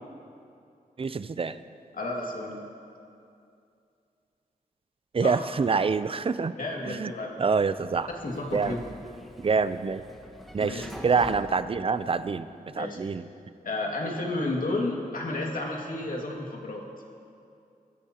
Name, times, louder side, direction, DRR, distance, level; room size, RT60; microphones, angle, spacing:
voice 1, 1.0-1.6 5.1-6.5 6.9-7.1 7.4-8.1 8.5-8.7 9.4-10.0 10.5-12.5 12.7-13.3, right 5 dB, 40° right, 13 dB, 0.5 m, -26 dB
voice 2, 1.9-2.6 5.2-5.4 6.6-7.4 8.1-8.9 10.6-11.1 12.8-13.0 13.6-16.8, left 2 dB, 65° left, -1 dB, 2.1 m, -32 dB
Sliding door, 7.4-12.6, equal, ahead, 1.4 m, -46 dB
22.5 x 14.0 x 2.9 m, 2.5 s
wide cardioid pair, 100°, 15 cm